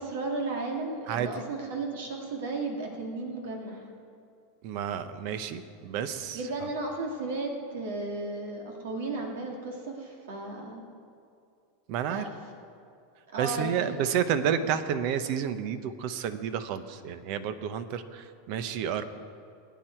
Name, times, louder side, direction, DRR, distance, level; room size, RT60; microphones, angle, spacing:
voice 1, 0.0-3.9 6.3-10.8 12.1-12.3 13.3-13.8 14.4-14.5, right 2 dB, 80° right, 1 dB, 2.1 m, -34 dB
voice 2, 1.1-1.4 4.6-6.7 11.9-12.3 13.4-19.1, right 8 dB, 60° right, 11 dB, 0.9 m, -30 dB
20.5 x 9.3 x 4.5 m, 2.4 s
supercardioid pair, 115°, 0 cm